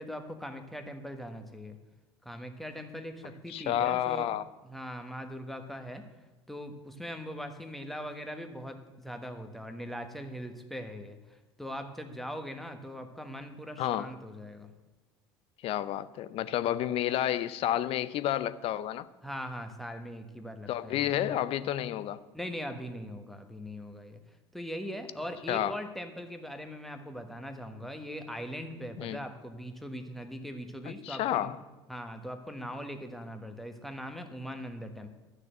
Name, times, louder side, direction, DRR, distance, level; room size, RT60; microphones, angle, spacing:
voice 1, 0.0-1.8 2.2-4.3 4.6-6.0 6.5-14.7 19.2-21.3 22.3-24.2 24.5-31.5 31.9-35.1, equal, ahead, 1.4 m, -41 dB
voice 2, 3.5-4.4 13.8-14.1 15.6-19.1 20.7-22.2 25.5-25.7 29.0-29.2 30.9-31.6, left 12 dB, 45° left, 0.6 m, -30 dB
12.5 x 6.5 x 7.7 m
figure-of-eight pair, 70°, 14 cm